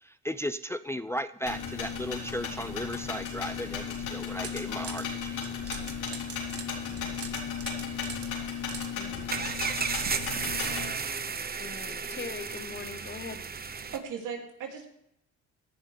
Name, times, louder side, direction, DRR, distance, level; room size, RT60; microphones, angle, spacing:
voice 1, 0.0-5.8, equal, 10° left, 12 dB, 0.4 m, -36 dB
sound 1, 1.4-10.9, left 6 dB, 85° left, 4.0 m, -35 dB
sound 2, 4.2-5.1 5.4-8.9, right 6 dB, 50° right, 1.7 m, -42 dB
voice 2, 7.7-9.2 11.1-11.3 13.9-14.9, right 7 dB, 85° right, 2 dB, 2.9 m, -41 dB
voice 3, 9.0-9.5 11.6-13.5, left 5 dB, 35° left, 10 dB, 1.2 m, -42 dB
sound 3, 9.3-14.0, right 5 dB, 30° right, 1.0 m, -33 dB
17.5 x 11.0 x 3.4 m, 0.78 s
cardioid pair, 90°, 30 cm